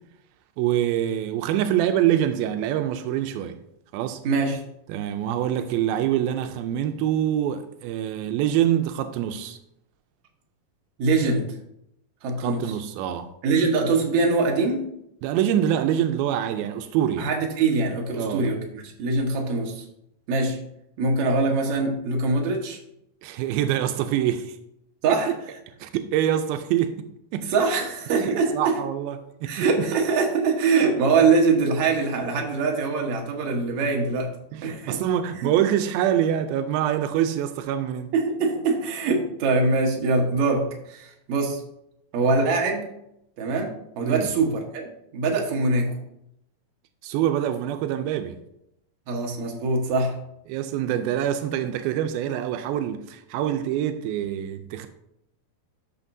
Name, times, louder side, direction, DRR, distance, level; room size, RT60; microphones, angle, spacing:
voice 1, 0.6-3.6 3.9-4.2 4.9-9.6 12.4-13.3 15.2-17.3 18.2-18.5 23.2-24.6 25.8-27.1 27.3-27.5 28.2-29.9 34.5-38.1 44.0-44.3 47.0-48.4 50.5-54.9, right 10 dB, 85° right, 2.4 m, -25 dB
voice 2, 4.2-4.6 11.0-11.5 12.2-12.7 13.4-14.9 17.2-19.8 20.3-20.6 21.0-22.8 25.0-25.3 27.5-28.8 29.5-34.3 34.6-35.0 35.4-35.5 38.1-41.6 42.1-42.8 43.4-44.9 45.1-45.9 49.1-50.2, right 3 dB, 60° right, 2.2 m, -23 dB
12.5 x 5.7 x 2.7 m
omnidirectional pair, 4.2 m